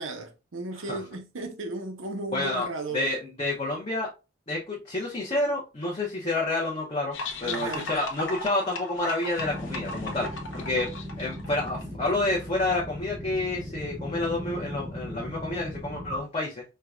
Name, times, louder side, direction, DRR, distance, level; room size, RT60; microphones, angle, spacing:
voice 1, 0.0-3.1 7.4-7.9, right 2 dB, 75° right, 0.7 m, -35 dB
voice 2, 2.3-2.7 2.9-4.1 4.5-16.6, left 2 dB, 30° left, 0.7 m, -29 dB
sound 1, 7.1-11.8, left 2 dB, 70° left, 0.7 m, -36 dB
sound 2, 9.4-16.2, equal, 20° right, 0.6 m, -38 dB
4.4 x 2.2 x 2.4 m
head